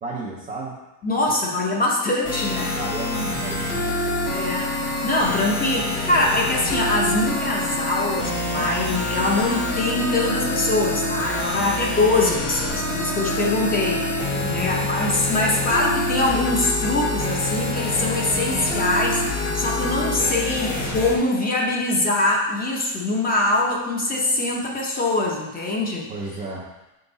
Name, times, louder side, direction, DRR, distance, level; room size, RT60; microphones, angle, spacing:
voice 1, 0.0-0.8 2.7-3.8 11.4-11.7 14.3-14.8 26.1-26.7, right 3 dB, 20° right, -4 dB, 0.6 m, -33 dB
voice 2, 1.0-2.8 4.3-4.8 5.0-26.1, left 2 dB, 20° left, -2 dB, 0.8 m, -23 dB
sound 1, 2.2-21.2, left 2 dB, 40° left, 1.5 m, -26 dB
6.9 x 3.9 x 4.0 m, 1.0 s
cardioid pair, 160°, 45 cm